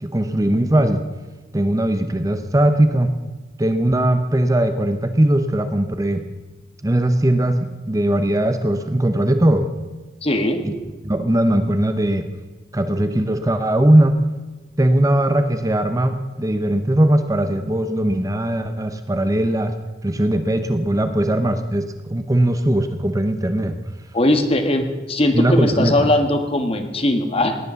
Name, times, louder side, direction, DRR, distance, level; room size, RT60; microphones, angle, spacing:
voice 1, 0.0-1.0 1.5-3.1 3.6-6.3 6.8-7.6 7.9-9.7 10.6-10.7 11.0-12.3 12.7-14.2 14.8-19.7 20.0-23.8 25.3-26.1, right 1 dB, 20° right, 8 dB, 0.8 m, -19 dB
voice 2, 10.2-10.7 24.1-27.6, left 1 dB, 35° left, 6 dB, 1.5 m, -19 dB
18.0 x 10.5 x 6.9 m, 1.2 s
head